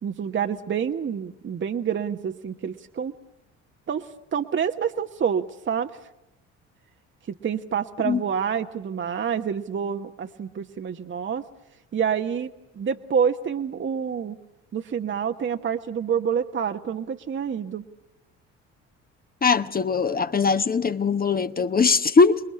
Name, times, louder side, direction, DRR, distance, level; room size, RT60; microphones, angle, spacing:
voice 1, 0.0-3.1 3.9-5.9 7.4-11.4 11.9-12.5 12.8-14.4 14.7-17.8, right 7 dB, 30° right, 1.1 m, -27 dB
voice 2, 19.4-22.4, left 5 dB, 25° left, 1.1 m, -21 dB
28.0 x 21.5 x 9.8 m
figure-of-eight pair, 55°, 37 cm